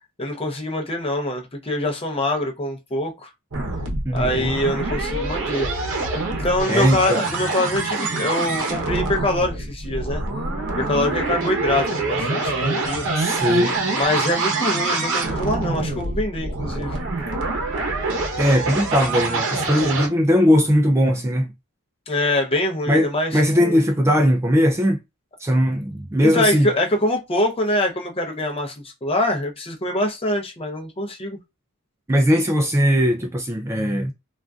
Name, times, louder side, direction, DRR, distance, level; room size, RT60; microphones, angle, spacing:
voice 1, 0.2-3.3 4.1-5.7 6.4-10.2 10.8-13.1 13.9-17.0 22.1-23.8 26.2-28.7 29.0-31.4, left 1 dB, 25° left, 0.7 m, -24 dB
sound 1, 3.5-20.1, right 3 dB, 60° right, 0.8 m, -25 dB
voice 2, 4.0-4.5 6.7-7.2 13.2-13.7 18.4-21.5 22.9-25.0 25.4-26.7 32.1-34.1, equal, 10° right, 0.3 m, -19 dB
3.6 x 2.4 x 2.3 m
head